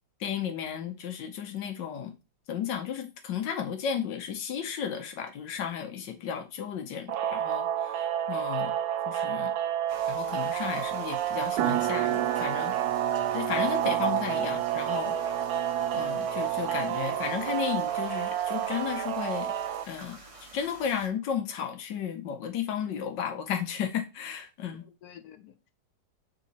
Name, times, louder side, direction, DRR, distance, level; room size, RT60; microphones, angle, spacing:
voice 1, 0.2-2.1 2.5-8.7 9.1-9.5 10.1-12.7 13.3-15.2 15.9-19.5 19.9-24.8, left 8 dB, 90° left, 1.6 m, -34 dB
voice 2, 5.9-6.3 24.7-25.7, left 10 dB, 65° left, 1.1 m, -51 dB
sound 1, 7.1-19.8, right 10 dB, 65° right, 1.1 m, -30 dB
sound 2, 9.9-21.1, right 2 dB, 25° right, 1.0 m, -49 dB
sound 3, 11.6-17.8, right 14 dB, 90° right, 1.3 m, -33 dB
7.0 x 3.7 x 4.1 m
omnidirectional pair, 1.9 m